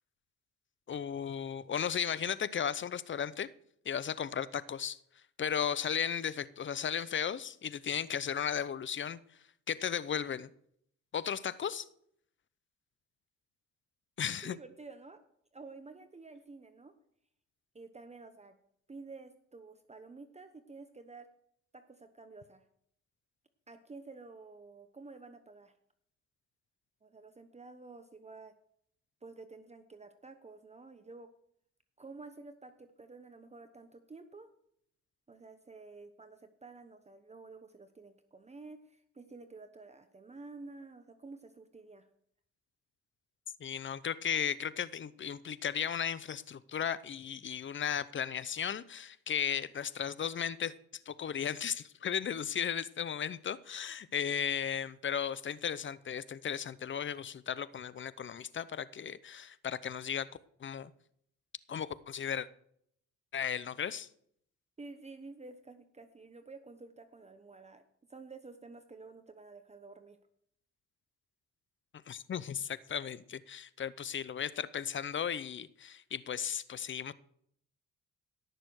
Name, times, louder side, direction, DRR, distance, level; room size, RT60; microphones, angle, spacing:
voice 1, 0.9-3.5 3.8-5.0 5.4-9.2 9.7-10.5 11.1-11.9 14.2-14.6 43.6-50.7 51.1-60.3 60.6-60.9 61.7-62.5 63.3-64.1 72.1-77.1, left 8 dB, 40° left, 17 dB, 0.7 m, -35 dB
voice 2, 14.4-15.2 15.5-16.9 17.7-18.6 18.9-21.3 21.7-22.6 23.7-25.7 27.0-28.5 29.2-31.3 32.0-34.5 35.3-42.1 64.8-67.8 68.1-70.2, right 3 dB, 20° right, 8 dB, 1.0 m, -51 dB
17.5 x 6.8 x 6.4 m, 0.69 s
cardioid pair, 90°, 30 cm